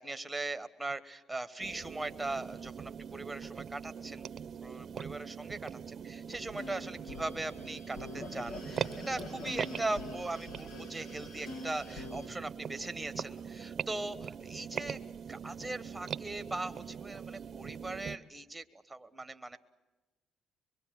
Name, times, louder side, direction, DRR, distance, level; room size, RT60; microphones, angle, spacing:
voice 1, 0.0-4.3 4.6-15.0 15.3-19.6, right 2 dB, 10° right, 10 dB, 1.2 m, -40 dB
sound 1, 1.6-18.2, right 7 dB, 45° right, 0.9 m, -42 dB
sound 2, 6.3-12.3, left 2 dB, 70° left, 2.5 m, -45 dB
24.5 x 23.0 x 7.5 m, 1.1 s
cardioid pair, 105°, 0 cm